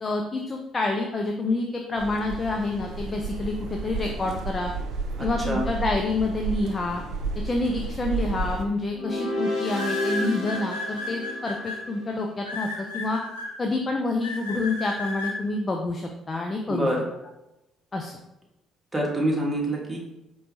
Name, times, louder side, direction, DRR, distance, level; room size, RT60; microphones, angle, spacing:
voice 1, 0.0-4.7 5.2-7.0 7.4-13.2 13.6-16.9 17.9-18.2, left 2 dB, 30° left, 2 dB, 0.4 m, -28 dB
sound 1, 2.0-8.6, right 3 dB, 60° right, 0.4 m, -32 dB
voice 2, 5.2-5.7 16.7-17.1 18.9-20.0, right 1 dB, 20° right, -2 dB, 1.3 m, -26 dB
sound 2, 8.2-8.5 9.7-11.8 12.4-13.5 14.2-15.3, left 3 dB, 90° left, 0.6 m, -33 dB
sound 3, 8.9-12.1, left 1 dB, 60° left, 1.1 m, -31 dB
4.3 x 3.1 x 2.6 m, 0.91 s
hypercardioid pair, 50°, 0 cm